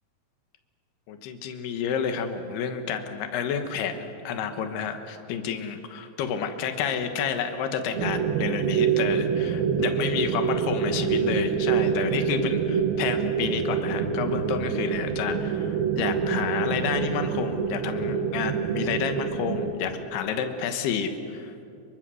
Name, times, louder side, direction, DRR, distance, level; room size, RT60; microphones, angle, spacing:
voice 1, 1.1-21.6, left 7 dB, 90° left, 7 dB, 3.3 m, -30 dB
sound 1, 8.0-19.7, right 6 dB, 75° right, 3.1 m, -26 dB
29.0 x 24.0 x 6.3 m, 2.6 s
omnidirectional pair, 4.5 m